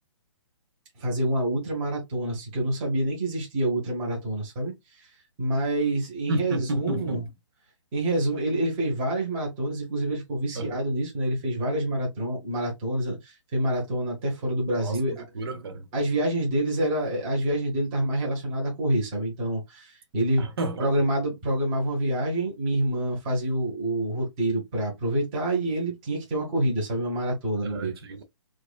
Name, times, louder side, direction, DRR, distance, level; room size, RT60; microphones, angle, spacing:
voice 1, 1.0-5.1 5.4-7.2 7.9-15.2 15.9-20.5 20.8-27.9, right 1 dB, 20° right, 1.3 m, -27 dB
voice 2, 6.3-7.3 10.5-10.7 14.7-15.9 20.4-20.9 27.6-28.2, right 2 dB, 50° right, 0.9 m, -32 dB
4.6 x 2.5 x 2.4 m
hypercardioid pair, 165°, 16 cm